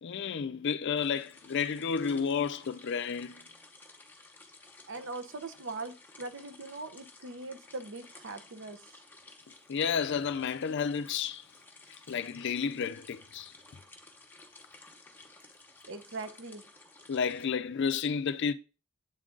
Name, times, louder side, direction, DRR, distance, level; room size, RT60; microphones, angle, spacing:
voice 1, 0.0-3.5 9.7-11.5 12.1-13.5 17.1-18.5, left 6 dB, 55° left, 0.4 m, -31 dB
sound 1, 1.0-17.5, left 3 dB, 10° left, 0.9 m, -55 dB
voice 2, 4.9-8.8 15.9-16.6, right 3 dB, 60° right, 0.7 m, -41 dB
8.0 x 3.8 x 3.7 m
head